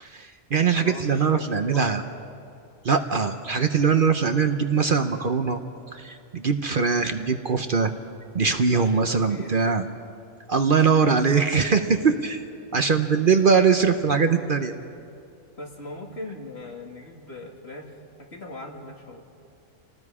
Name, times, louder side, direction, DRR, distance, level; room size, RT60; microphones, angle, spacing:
voice 1, 0.0-2.0 2.8-5.6 5.9-7.9 8.3-9.8 10.5-12.4 12.7-14.7, right 5 dB, 50° right, 7 dB, 0.9 m, -21 dB
voice 2, 0.8-2.0 8.7-9.7 11.8-12.1 15.6-19.2, left 2 dB, 55° left, 0 dB, 2.5 m, -40 dB
28.5 x 18.5 x 4.9 m, 2.6 s
omnidirectional pair, 1.3 m